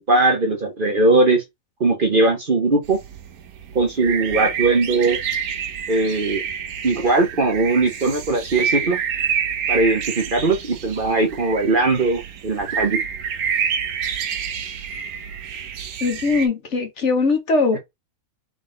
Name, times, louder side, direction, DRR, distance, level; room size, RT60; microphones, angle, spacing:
voice 1, 0.0-1.4 1.8-3.0 3.7-5.2 5.9-6.4 6.8-9.0 9.7-13.0, right 3 dB, 40° right, 1.0 m, -19 dB
sound 1, 2.8-16.5, right 7 dB, 85° right, 1.3 m, -28 dB
voice 2, 16.0-17.8, left 3 dB, 55° left, 1.4 m, -20 dB
3.7 x 3.7 x 3.8 m
omnidirectional pair, 1.5 m